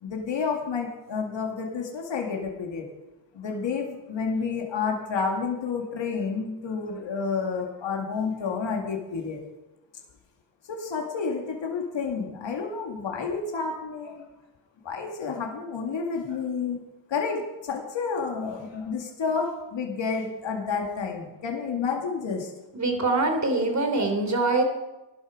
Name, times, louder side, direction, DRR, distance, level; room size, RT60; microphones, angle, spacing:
voice 1, 0.0-2.9 3.3-9.4 10.7-14.3 14.8-16.8 17.1-22.5, left 5 dB, 70° left, 1 dB, 2.3 m, -30 dB
voice 2, 22.7-24.6, right 2 dB, 35° right, 5 dB, 3.4 m, -24 dB
16.5 x 11.5 x 5.1 m, 1.0 s
cardioid pair, 70°, 47 cm